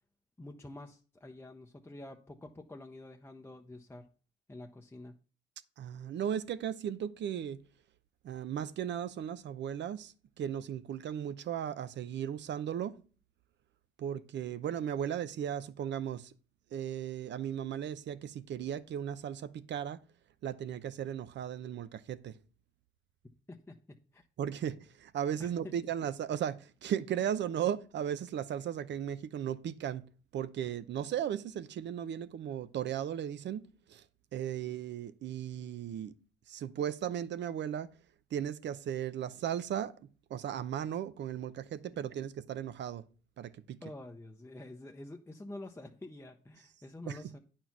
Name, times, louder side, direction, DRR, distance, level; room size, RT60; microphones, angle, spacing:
voice 1, 0.4-4.1 4.5-5.2 23.5-23.7 24.1-24.2 25.4-25.5 43.8-47.4, left 2 dB, 10° left, 0.7 m, -48 dB
voice 2, 5.8-7.6 8.2-13.0 14.0-16.3 16.7-20.0 20.4-22.4 24.4-30.1 30.3-34.0 34.3-36.1 36.5-37.9 38.3-39.9 40.3-43.0 43.4-43.8 47.1-47.2, right 9 dB, 65° right, 0.6 m, -36 dB
9.1 x 4.4 x 5.9 m
cardioid pair, 90°, 20 cm